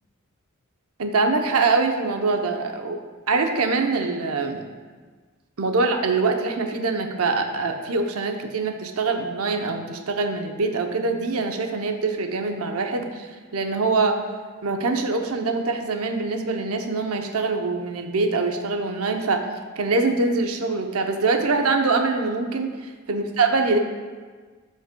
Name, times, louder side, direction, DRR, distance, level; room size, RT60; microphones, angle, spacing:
voice 1, 1.0-3.0 3.3-4.7 5.6-14.2 14.6-19.4 19.8-23.8, right 3 dB, 80° right, 4 dB, 0.7 m, -24 dB
12.5 x 5.4 x 2.2 m, 1.5 s
head